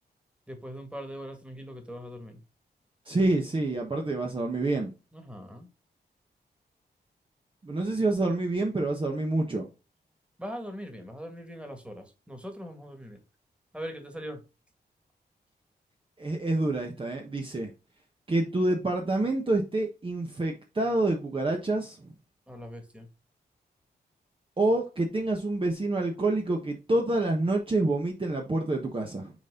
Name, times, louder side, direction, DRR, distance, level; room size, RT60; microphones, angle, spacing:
voice 1, 0.5-2.4 5.1-5.7 10.4-13.2 13.7-14.4 22.5-23.1, equal, 5° right, 2.0 m, -41 dB
voice 2, 3.1-4.9 7.6-9.7 16.2-17.7 18.3-22.0 24.6-29.3, right 2 dB, 30° right, 1.2 m, -27 dB
6.2 x 4.2 x 3.8 m
cardioid pair, 80°, 17 cm